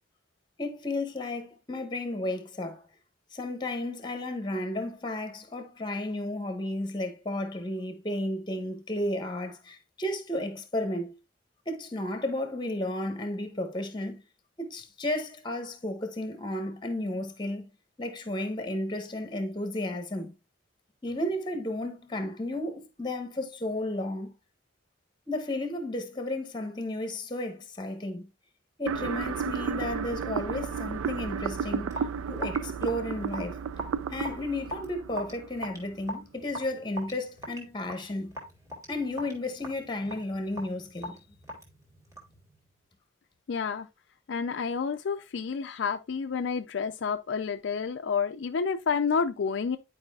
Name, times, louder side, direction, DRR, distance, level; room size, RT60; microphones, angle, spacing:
voice 1, 0.6-2.8 3.3-11.2 11.7-14.2 14.6-17.6 18.0-20.3 21.0-24.3 25.3-28.3 28.8-31.9 32.3-33.6 34.1-38.3 38.9-41.2, left 1 dB, 20° left, 1.0 m, -33 dB
sound 1, 28.9-35.9, right 6 dB, 90° right, 0.4 m, -33 dB
Raindrop / Drip, 31.9-42.4, equal, 15° right, 2.0 m, -41 dB
voice 2, 43.5-43.9 44.3-49.8, left 5 dB, 60° left, 0.4 m, -29 dB
10.5 x 4.8 x 2.3 m
head